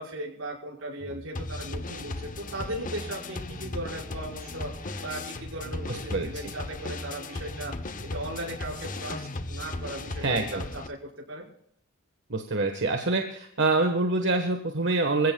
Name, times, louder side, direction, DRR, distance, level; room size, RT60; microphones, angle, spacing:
voice 1, 0.0-11.0 11.3-11.5, right 1 dB, 80° right, -3 dB, 5.6 m, -37 dB
sound 1, 1.0-10.9, left 2 dB, 40° left, 0.9 m, -37 dB
voice 2, 5.9-6.3 10.2-10.6 12.3-15.3, right 3 dB, 60° right, 4 dB, 1.4 m, -26 dB
25.5 x 16.0 x 2.3 m, 0.70 s
head